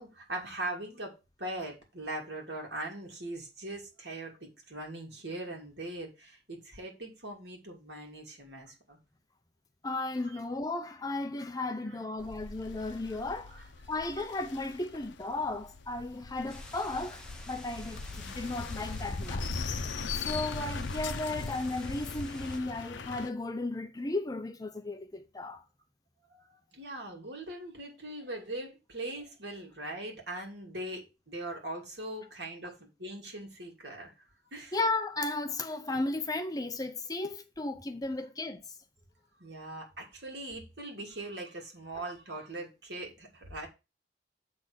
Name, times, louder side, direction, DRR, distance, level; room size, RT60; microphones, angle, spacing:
voice 1, 0.0-9.0 10.3-10.4 11.8-12.0 13.5-13.6 26.3-26.4 26.7-34.1 34.5-34.8 39.4-43.7, right 1 dB, 60° right, 2.8 m, -41 dB
voice 2, 9.8-13.6 13.9-19.6 20.1-25.6 34.7-38.6, left 2 dB, 20° left, 0.6 m, -35 dB
sound 1, 12.2-23.3, left 4 dB, 80° left, 0.7 m, -40 dB
sound 2, 16.5-22.6, equal, 5° left, 1.1 m, -44 dB
7.5 x 4.0 x 6.4 m
head